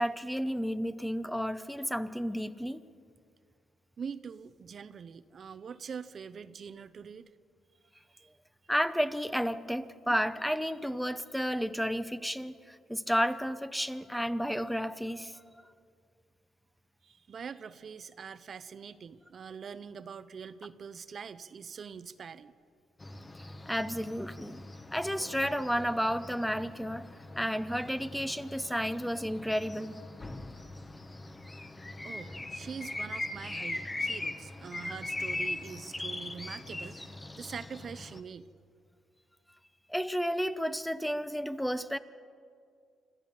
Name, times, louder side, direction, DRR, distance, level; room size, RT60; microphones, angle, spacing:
voice 1, 0.0-2.8 8.7-15.6 23.7-24.6 24.9-27.1 27.4-30.0 39.9-42.0, equal, ahead, 13 dB, 0.8 m, -32 dB
voice 2, 4.0-7.3 8.1-8.3 17.0-22.5 32.0-38.5, right 6 dB, 50° right, 13 dB, 0.7 m, -44 dB
sound 1, 23.0-38.2, left 2 dB, 20° left, 1.2 m, -41 dB
26.5 x 14.0 x 7.4 m, 2.3 s
cardioid pair, 90°, 0 cm